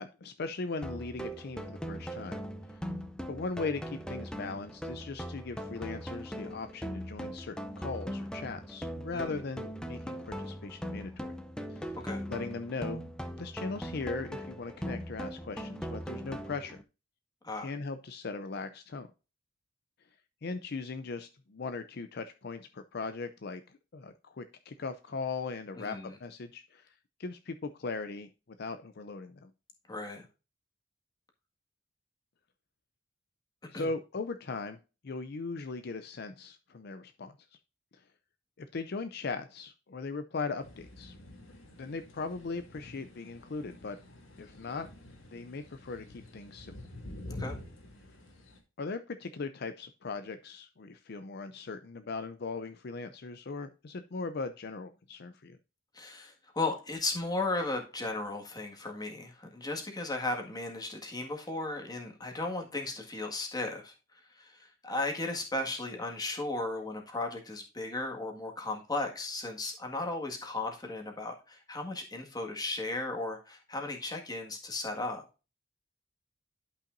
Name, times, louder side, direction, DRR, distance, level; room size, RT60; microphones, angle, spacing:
voice 1, 0.0-2.4 2.7-2.8 3.3-11.3 11.7-12.0 12.3-13.0 13.4-16.8 17.6-19.1 20.4-26.9 27.2-28.3 28.6-29.5 33.7-34.8 35.0-37.6 37.9-38.0 38.6-41.1 41.8-44.0 44.4-44.9 45.3-46.7 48.8-55.6, left 4 dB, 55° left, 10 dB, 0.5 m, -39 dB
sound 1, 0.8-16.8, equal, 5° left, 0.6 m, -40 dB
voice 2, 25.7-26.1 29.9-30.2 33.7-33.9 47.3-47.6 55.9-63.9 64.3-75.2, left 2 dB, 20° left, 2 dB, 1.7 m, -35 dB
sound 2, 40.6-48.6, left 1 dB, 80° left, 2.2 m, -48 dB
11.5 x 5.6 x 2.5 m, 0.31 s
head